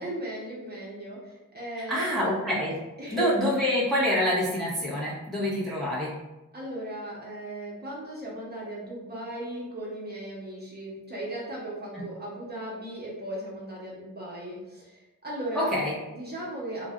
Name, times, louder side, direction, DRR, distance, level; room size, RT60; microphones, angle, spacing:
voice 1, 0.0-2.2 3.0-3.5 6.5-15.7 16.1-16.9, right 1 dB, 30° right, -5 dB, 0.9 m, -37 dB
voice 2, 1.9-2.8 3.1-6.1 15.7-15.9, left 1 dB, ahead, -7 dB, 0.7 m, -26 dB
2.4 x 2.1 x 3.5 m, 1.0 s
wide cardioid pair, 105°, 33 cm